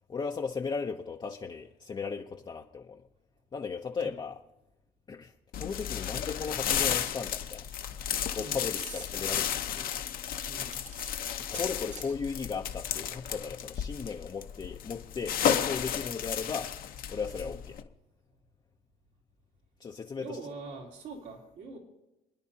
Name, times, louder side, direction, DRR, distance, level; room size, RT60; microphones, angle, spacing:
voice 1, 0.1-3.1 3.5-4.4 5.1-7.6 8.3-9.9 11.4-16.7 17.1-17.9 19.8-20.4, left 5 dB, 25° left, 2 dB, 0.6 m, -36 dB
sound 1, 5.5-17.8, left 9 dB, 60° left, 0.9 m, -33 dB
sound 2, 6.9-7.3 8.7-9.1 10.6-12.2, right 6 dB, 45° right, 1.1 m, -46 dB
voice 2, 10.4-10.8 17.4-17.6 20.2-21.8, right 3 dB, 80° right, -1 dB, 3.2 m, -44 dB
27.0 x 9.9 x 2.8 m, 0.95 s
cardioid pair, 110°, 17 cm